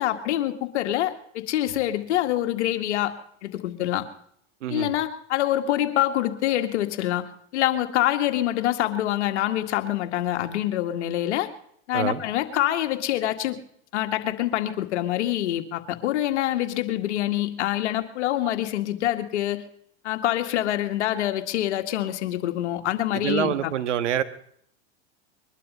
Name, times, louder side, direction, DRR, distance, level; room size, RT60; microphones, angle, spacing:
voice 1, 0.0-3.1 3.4-4.1 4.7-11.5 11.9-13.6 13.9-19.6 20.0-23.7, left 13 dB, 75° left, 7 dB, 2.0 m, -25 dB
voice 2, 23.1-24.2, right 10 dB, 85° right, 11 dB, 1.5 m, -26 dB
22.5 x 12.0 x 5.5 m, 0.67 s
hypercardioid pair, 110°, 35 cm